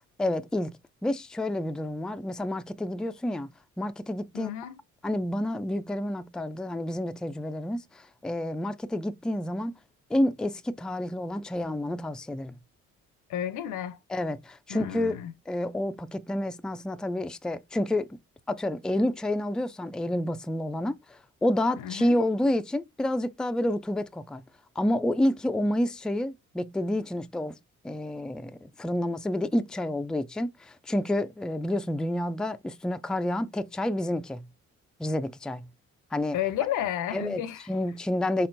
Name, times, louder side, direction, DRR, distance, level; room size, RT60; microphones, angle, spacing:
voice 1, 0.2-0.8 1.0-3.5 3.8-4.5 5.0-9.7 10.1-12.5 14.1-15.2 15.5-18.2 18.5-24.4 24.8-27.6 27.8-34.5 35.0-35.7 36.1-36.4 37.1-37.4 37.7-38.5, left 1 dB, 5° left, 0.3 m, -29 dB
voice 2, 4.3-4.8 13.3-14.0 14.7-15.3 21.8-22.2 36.3-37.7, left 11 dB, 85° left, 0.7 m, -32 dB
4.3 x 4.1 x 2.5 m
cardioid pair, 90°, 30 cm